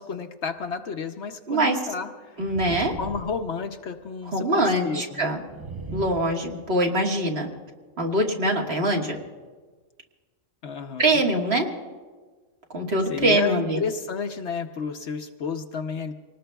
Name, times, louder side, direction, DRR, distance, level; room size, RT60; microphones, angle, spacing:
voice 1, 0.0-2.4 2.7-5.4 10.6-11.0 13.1-16.1, left 5 dB, 65° left, 6 dB, 0.9 m, -32 dB
sound 1, 0.6-0.7 2.4-4.0 5.5-6.8, right 3 dB, 25° right, 0.5 m, -38 dB
voice 2, 1.5-1.8 2.4-2.9 4.3-5.4 5.9-7.5 8.0-9.2 11.0-11.7 12.7-13.8, right 1 dB, 50° right, 0 dB, 1.8 m, -23 dB
26.0 x 19.0 x 2.3 m, 1.4 s
omnidirectional pair, 1.4 m